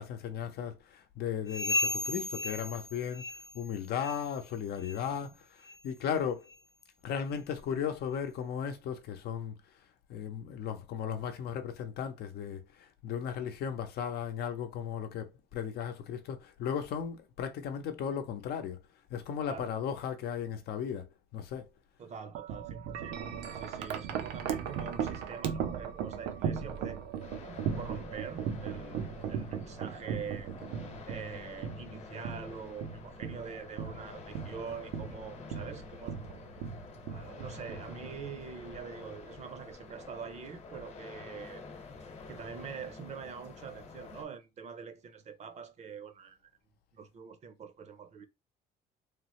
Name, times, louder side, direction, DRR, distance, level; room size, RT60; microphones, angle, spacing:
voice 1, 0.0-3.3 3.5-5.4 5.8-6.5 7.0-9.5 10.1-12.6 13.0-18.8 19.1-21.1 21.3-21.7, left 8 dB, 70° left, 0.7 m, -36 dB
sound 1, 1.5-3.7 4.0-4.3 4.8-5.0 5.6-5.8 6.5-6.6 7.3-7.4, left 2 dB, 20° left, 0.4 m, -35 dB
voice 2, 22.0-23.2 23.5-27.0 27.3-30.5 31.1-36.2 37.1-41.6 42.3-46.5 46.9-48.3, right 6 dB, 40° right, 0.6 m, -44 dB
Wind chime, 22.3-38.5, right 7 dB, 90° right, 0.6 m, -38 dB
sound 2, 27.2-44.2, left 4 dB, 40° left, 0.9 m, -49 dB
3.2 x 2.0 x 3.0 m
cardioid pair, 110°, 17 cm